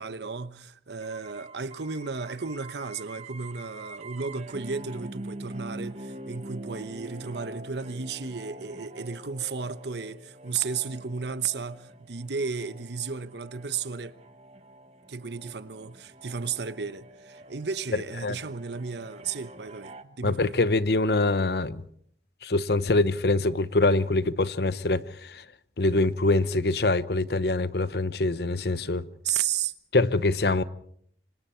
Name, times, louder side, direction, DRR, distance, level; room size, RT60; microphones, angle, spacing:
voice 1, 0.0-14.2 15.1-20.5 29.2-29.7, right 5 dB, 75° right, 1.0 m, -33 dB
sound 1, 1.0-20.0, right 1 dB, 35° right, 1.1 m, -45 dB
voice 2, 20.2-21.8 22.4-25.4 25.8-29.0 29.9-30.6, left 2 dB, 65° left, 0.9 m, -24 dB
27.0 x 25.0 x 4.5 m
head